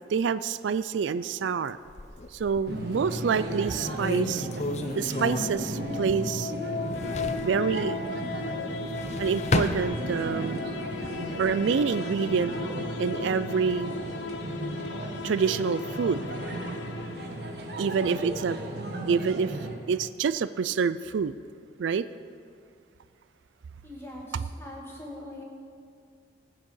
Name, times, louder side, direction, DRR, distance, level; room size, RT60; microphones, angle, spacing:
voice 1, 0.1-1.8 2.3-4.5 5.0-6.5 7.4-8.0 9.2-10.6 11.4-12.5 13.0-14.0 15.2-16.2 17.8-18.6 19.1-19.6 19.9-21.3 21.8-22.0, right 6 dB, 80° right, 14 dB, 0.4 m, -27 dB
sound 1, 1.9-2.8 3.3-3.4 3.8-6.4 6.7-7.6 8.7-10.5 10.9-11.5, left 2 dB, 35° left, 0.6 m, -32 dB
sound 2, 2.6-19.7, right 1 dB, 60° right, 1.4 m, -35 dB
sound 3, 5.0-18.0, left 5 dB, 80° left, 0.6 m, -37 dB
voice 2, 23.8-25.4, left 1 dB, 15° left, -2 dB, 1.9 m, -42 dB
19.5 x 6.5 x 5.5 m, 2.2 s
head